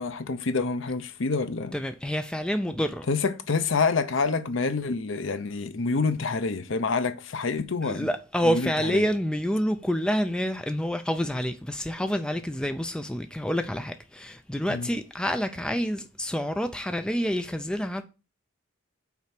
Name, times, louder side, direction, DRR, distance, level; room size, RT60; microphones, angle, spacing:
voice 1, 0.0-1.7 3.1-8.1 8.4-9.1 14.7-14.9, left 4 dB, 65° left, 0.7 m, -27 dB
voice 2, 1.7-3.1 7.8-18.0, equal, 5° left, 0.4 m, -28 dB
5.8 x 4.4 x 5.9 m
head